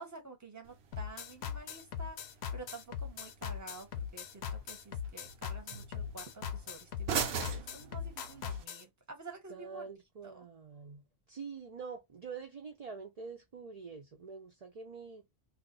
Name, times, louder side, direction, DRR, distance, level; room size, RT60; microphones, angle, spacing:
voice 1, 0.0-2.2 2.5-9.9 10.2-10.5, right 3 dB, 20° right, 0.8 m, -50 dB
sound 1, 0.6-8.6, right 6 dB, 80° right, 0.9 m, -43 dB
sound 2, 0.9-8.8, left 8 dB, 90° left, 0.9 m, -40 dB
voice 2, 9.5-15.3, right 5 dB, 45° right, 0.6 m, -46 dB
2.5 x 2.4 x 3.7 m
omnidirectional pair, 1.1 m